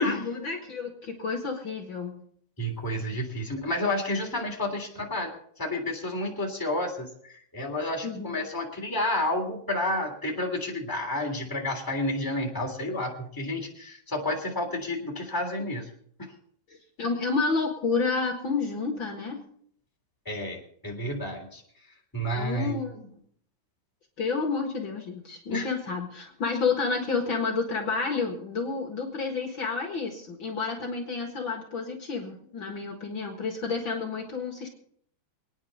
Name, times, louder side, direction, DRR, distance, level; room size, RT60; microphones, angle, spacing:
voice 1, 0.0-2.2 8.0-8.4 17.0-19.4 22.3-23.1 24.2-34.7, left 4 dB, 80° left, 2 dB, 1.0 m, -30 dB
voice 2, 2.6-15.9 16.2-16.3 20.2-22.8 25.5-25.7, left 1 dB, 5° left, -1 dB, 2.2 m, -30 dB
26.0 x 9.8 x 4.1 m, 0.63 s
omnidirectional pair, 5.1 m